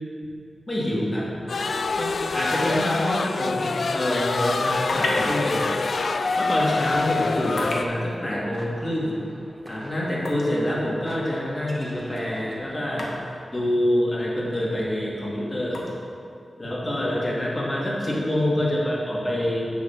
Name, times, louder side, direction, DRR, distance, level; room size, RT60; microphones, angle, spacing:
voice 1, 0.7-1.6 2.0-5.7 6.4-9.2 9.7-13.0 13.5-15.8 16.6-19.7, left 1 dB, 25° left, -6 dB, 2.3 m, -26 dB
sound 1, 1.5-7.8, left 3 dB, 65° left, 0.3 m, -25 dB
sound 2, 4.4-18.2, left 2 dB, 85° left, 1.3 m, -40 dB
sound 3, 8.1-13.2, equal, 10° right, 1.1 m, -46 dB
9.6 x 4.1 x 7.0 m, 2.4 s
wide cardioid pair, 90°, 0 cm